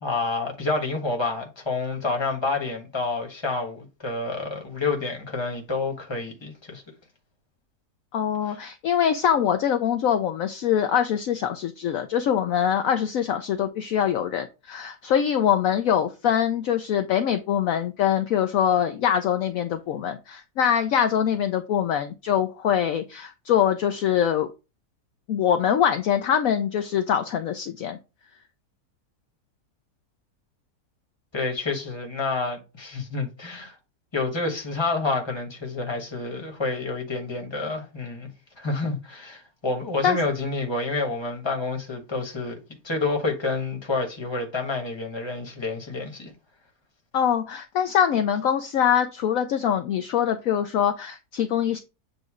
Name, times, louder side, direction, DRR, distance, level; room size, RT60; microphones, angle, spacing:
voice 1, 0.0-6.8 8.5-8.6 31.3-33.7 34.1-38.3 38.6-42.6 42.8-46.3, left 3 dB, 15° left, 1.3 m, -28 dB
voice 2, 8.1-24.5 25.3-28.0 40.0-40.2 47.1-51.8, left 9 dB, 65° left, 0.9 m, -23 dB
7.7 x 2.6 x 4.8 m
omnidirectional pair, 1.7 m